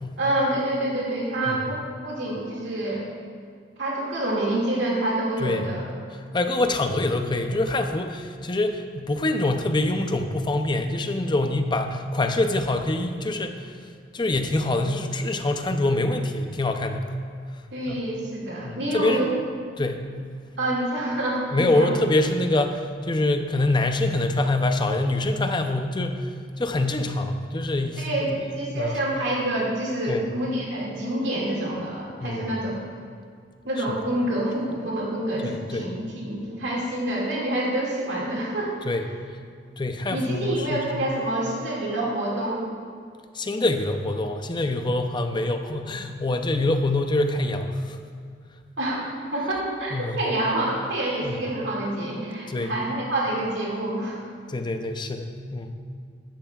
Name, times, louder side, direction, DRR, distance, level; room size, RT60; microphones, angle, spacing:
voice 1, 0.2-3.0 3.8-5.8 17.7-19.3 20.6-21.9 28.0-32.8 33.6-38.7 40.1-42.6 48.8-49.0 49.3-54.2, right 1 dB, 80° right, -4 dB, 2.2 m, -27 dB
voice 2, 6.3-13.6 14.1-17.1 17.9-18.1 18.6-19.3 19.8-20.0 21.5-26.3 26.6-28.1 28.7-29.0 30.1-30.2 32.2-32.4 35.4-35.8 38.8-39.0 39.8-40.8 43.3-48.0 49.9-50.2 51.2-51.4 52.5-52.7 54.5-55.7, left 2 dB, 25° left, 6 dB, 0.6 m, -25 dB
13.0 x 10.5 x 2.4 m, 2.1 s
head